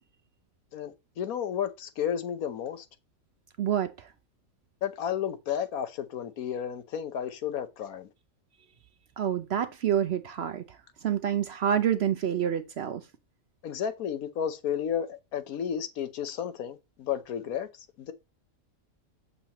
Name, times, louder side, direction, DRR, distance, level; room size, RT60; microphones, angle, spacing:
voice 1, 0.7-2.8 4.8-8.1 13.6-17.7 18.0-18.1, left 8 dB, 80° left, 1.3 m, -32 dB
voice 2, 3.6-4.1 9.2-10.8 11.0-13.0, right 9 dB, 60° right, 0.7 m, -28 dB
7.2 x 6.7 x 2.9 m
omnidirectional pair, 1.5 m